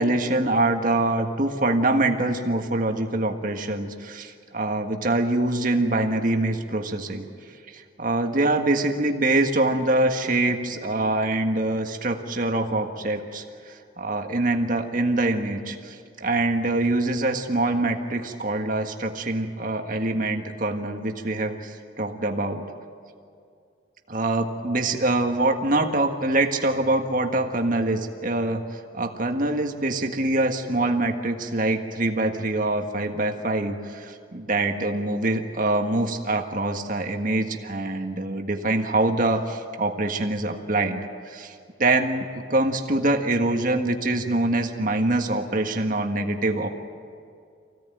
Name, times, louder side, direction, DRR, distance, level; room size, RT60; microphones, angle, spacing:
voice 1, 0.0-7.2 7.7-22.6 24.1-46.7, right 2 dB, 45° right, 4 dB, 1.7 m, -24 dB
25.0 x 17.0 x 9.2 m, 2.3 s
head